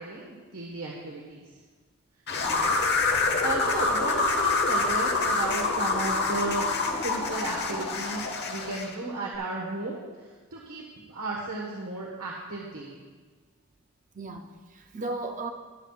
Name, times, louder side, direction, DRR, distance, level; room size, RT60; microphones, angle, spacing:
voice 1, 0.0-1.5 2.4-3.0 3.4-6.7 7.0-13.0, right 2 dB, 85° right, -3 dB, 1.4 m, -34 dB
sound 1, 2.3-8.9, left 3 dB, 50° left, 1.0 m, -26 dB
voice 2, 14.1-15.5, right 2 dB, 35° right, 5 dB, 0.5 m, -36 dB
21.0 x 7.6 x 2.4 m, 1.4 s
head